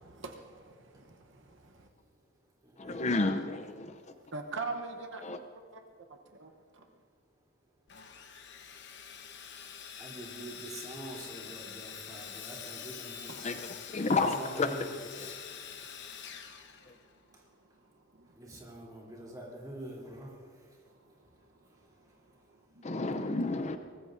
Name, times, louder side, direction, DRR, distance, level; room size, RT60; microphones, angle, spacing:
voice 1, 0.0-1.9 4.3-5.3 5.7-5.9 6.3-6.9 9.3-9.4 13.3-13.5 15.8-16.2 16.7-17.7 17.9-18.4 20.9-21.1 21.5-23.0, right 3 dB, 60° right, 0.9 m, -45 dB
voice 2, 2.8-4.0 5.2-5.4 13.4-13.6 13.9-14.8 22.8-23.8, left 3 dB, 30° left, 0.5 m, -30 dB
Sawing, 7.9-17.4, left 8 dB, 55° left, 1.0 m, -46 dB
voice 3, 10.0-14.9 18.4-20.3, right 1 dB, 20° right, 3.1 m, -45 dB
23.5 x 20.0 x 2.6 m
head